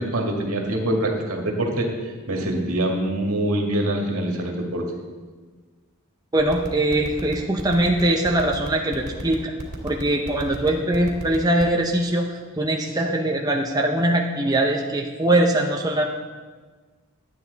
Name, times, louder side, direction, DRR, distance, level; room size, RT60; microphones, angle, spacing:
voice 1, 0.0-1.9 2.3-4.8, right 1 dB, 80° right, 0 dB, 1.9 m, -24 dB
voice 2, 6.3-9.5 9.8-16.1, right 1 dB, 15° right, 1 dB, 0.7 m, -22 dB
sound 1, 6.4-11.8, right 1 dB, 50° right, 2.6 m, -32 dB
12.5 x 9.3 x 4.0 m, 1.4 s
head